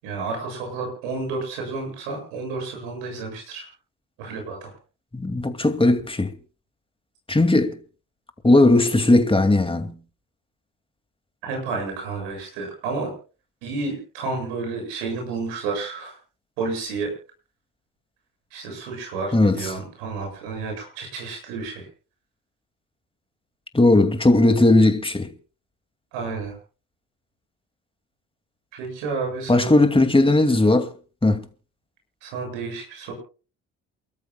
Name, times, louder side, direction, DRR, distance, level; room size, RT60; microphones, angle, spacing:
voice 1, 0.0-3.7 4.2-4.8 11.4-13.1 13.6-16.2 16.6-17.1 18.5-21.9 26.1-26.6 28.7-29.7 32.2-33.1, right 4 dB, 80° right, 7.4 m, -31 dB
voice 2, 5.1-6.3 7.3-7.8 8.4-10.0 19.3-19.6 23.7-25.3 29.5-30.9 31.2-31.4, left 2 dB, 15° left, 2.4 m, -17 dB
28.5 x 13.5 x 2.4 m
hypercardioid pair, 50°, 38 cm